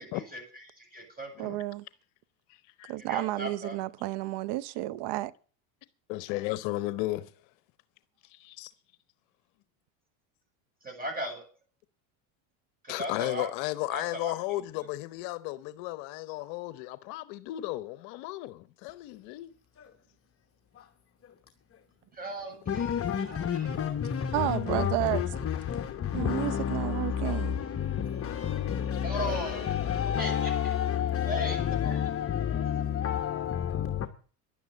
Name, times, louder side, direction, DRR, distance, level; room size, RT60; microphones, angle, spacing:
voice 1, 0.0-1.5 3.0-3.8 10.8-11.4 12.8-13.5 13.9-14.3 22.1-23.8 29.0-29.8 30.2-30.5 31.3-32.0, equal, 15° right, 7.7 m, -37 dB
voice 2, 1.4-1.8 2.9-5.3 24.3-25.2 26.1-27.6, right 17 dB, 55° right, 0.8 m, -31 dB
voice 3, 2.5-2.9 6.1-7.3 8.3-8.7 12.9-19.5, left 18 dB, 60° left, 0.9 m, -34 dB
voice 4, 22.7-34.1, left 9 dB, 25° left, 1.1 m, -30 dB
11.0 x 9.4 x 8.2 m
supercardioid pair, 95°, 50 cm